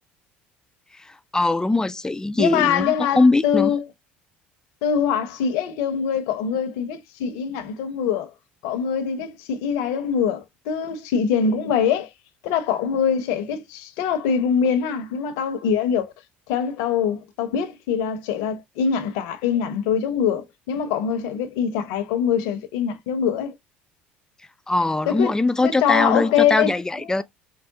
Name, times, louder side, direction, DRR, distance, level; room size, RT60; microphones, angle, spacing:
voice 1, 1.3-3.7 24.7-27.2, left 2 dB, 10° left, 0.4 m, -21 dB
voice 2, 2.4-3.8 4.8-8.3 8.6-12.1 12.4-16.1 16.5-23.5 25.0-25.3 25.6-27.2, left 7 dB, 65° left, 0.8 m, -23 dB
4.6 x 2.0 x 2.7 m
hypercardioid pair, 65°, 6 cm